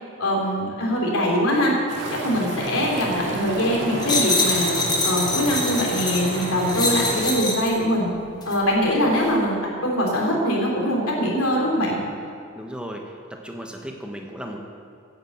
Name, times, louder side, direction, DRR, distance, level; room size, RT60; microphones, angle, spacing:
voice 1, 0.2-1.7 2.2-4.7 5.0-8.1 8.4-12.0, equal, 85° left, -2 dB, 3.3 m, -22 dB
sound 1, 1.9-7.4, right 1 dB, 55° right, 2.2 m, -30 dB
sound 2, 4.0-7.8 8.4-8.6, left 2 dB, 20° left, 1.2 m, -25 dB
voice 2, 12.5-14.6, equal, 5° right, 2 dB, 1.1 m, -35 dB
10.5 x 8.9 x 8.0 m, 2.4 s
head